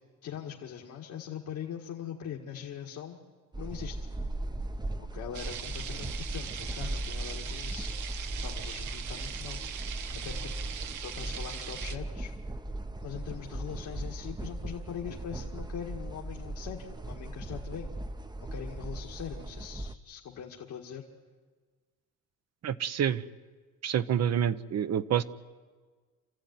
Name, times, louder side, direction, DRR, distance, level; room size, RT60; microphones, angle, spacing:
voice 1, 0.2-3.2 3.6-4.1 5.0-7.9 8.4-9.6 10.2-10.5 11.0-12.3 13.0-17.9 18.4-21.1, left 9 dB, 75° left, -1 dB, 2.0 m, -41 dB
sound 1, 3.5-20.0, right 1 dB, 15° right, 0.8 m, -38 dB
sound 2, 5.3-12.0, right 8 dB, 80° right, 1.2 m, -41 dB
voice 2, 22.6-23.2 23.8-25.2, right 9 dB, 60° right, 12 dB, 0.9 m, -27 dB
27.5 x 14.5 x 9.5 m, 1.5 s
cardioid pair, 90°, 30 cm